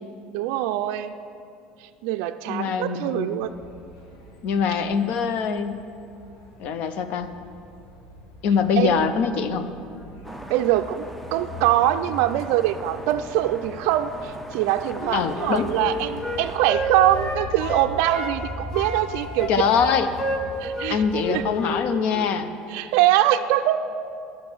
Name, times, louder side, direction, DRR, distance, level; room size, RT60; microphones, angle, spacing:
voice 1, 0.3-1.1 2.0-3.5 8.8-9.0 10.5-11.0 11.3-19.5 20.6-21.0 21.3-21.4 22.7-23.8, right 13 dB, 75° right, 7 dB, 0.3 m, -23 dB
voice 2, 2.5-3.4 4.4-5.8 6.6-7.3 8.4-9.7 15.1-15.7 19.5-20.1 20.9-22.5, left 6 dB, 60° left, 10 dB, 0.6 m, -23 dB
sound 1, 3.4-21.6, left 2 dB, 85° left, 1.6 m, -41 dB
sound 2, 10.2-16.6, right 1 dB, ahead, 0.6 m, -40 dB
Wind instrument woodwind instrument, 14.9-18.4 18.7-21.8 22.1-22.3, equal, 20° left, 1.3 m, -30 dB
11.5 x 6.1 x 6.1 m, 2.5 s
cardioid pair, 125°, 3 cm